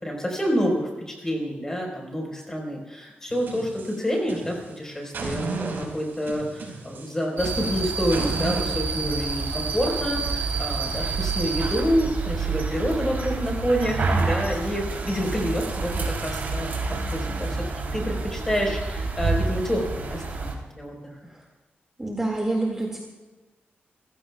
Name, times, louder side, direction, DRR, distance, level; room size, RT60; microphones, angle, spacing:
voice 1, 0.0-16.7 17.1-17.6 17.9-21.1, equal, 15° left, 0 dB, 4.7 m, -28 dB
sound 1, 3.3-4.7 5.1-8.7, right 3 dB, 70° right, 5.0 m, -34 dB
sound 2, 7.4-20.5, right 4 dB, 55° right, 3.4 m, -28 dB
voice 2, 22.0-23.0, right 2 dB, 15° right, -1 dB, 2.2 m, -27 dB
29.5 x 16.5 x 2.4 m, 1.2 s
wide cardioid pair, 160°, 4 cm